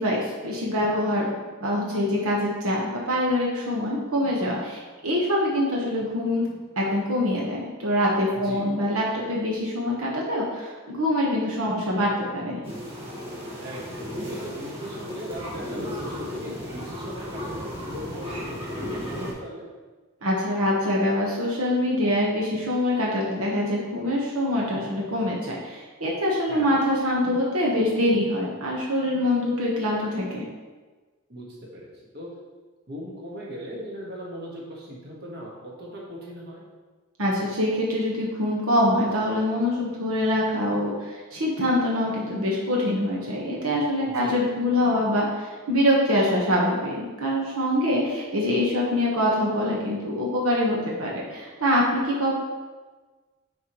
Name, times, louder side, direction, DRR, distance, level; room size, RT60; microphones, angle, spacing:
voice 1, 0.0-6.4 6.8-12.6 20.2-30.4 37.2-52.4, left 1 dB, 80° right, -3 dB, 1.3 m, -24 dB
sound 1, 12.6-19.3, equal, 25° right, 1.8 m, -34 dB
voice 2, 13.6-19.6 26.5-26.8 31.3-31.4 31.7-32.3 32.9-36.6 44.0-44.4, equal, 50° right, -4 dB, 1.5 m, -39 dB
9.5 x 4.7 x 3.1 m, 1.3 s
head